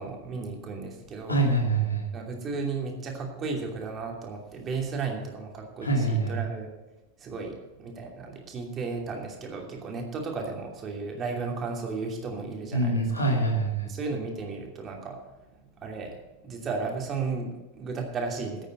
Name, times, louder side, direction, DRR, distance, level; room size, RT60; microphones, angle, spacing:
voice 1, 0.0-1.4 2.1-6.7 7.2-13.3 13.8-16.2 16.4-18.7, right 4 dB, 25° right, 1 dB, 2.7 m, -34 dB
voice 2, 1.3-2.1 5.8-6.4 12.7-13.9, right 2 dB, 80° left, 1 dB, 2.4 m, -25 dB
10.5 x 8.8 x 7.7 m, 1.0 s
figure-of-eight pair, 90°, 0 cm